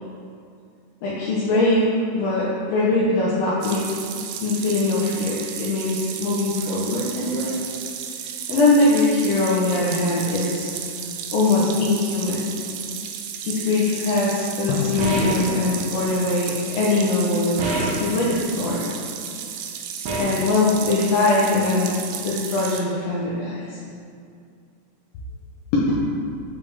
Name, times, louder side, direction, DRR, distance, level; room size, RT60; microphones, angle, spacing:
voice 1, 1.0-1.9 2.1-3.9 4.4-7.6 8.5-10.7 11.3-12.5 13.4-18.9 20.2-22.0 22.2-23.8 25.7-25.8, left 2 dB, 70° left, -7 dB, 1.7 m, -22 dB
sound 1, 3.6-22.8, right 8 dB, 90° right, 2.0 m, -33 dB
Drum, 14.7-17.6, left 4 dB, 85° left, 2.1 m, -34 dB
sound 2, 15.0-15.6 17.6-18.2 20.1-20.5, right 2 dB, 65° right, 2.1 m, -25 dB
6.8 x 5.1 x 3.4 m, 2.4 s
omnidirectional pair, 3.4 m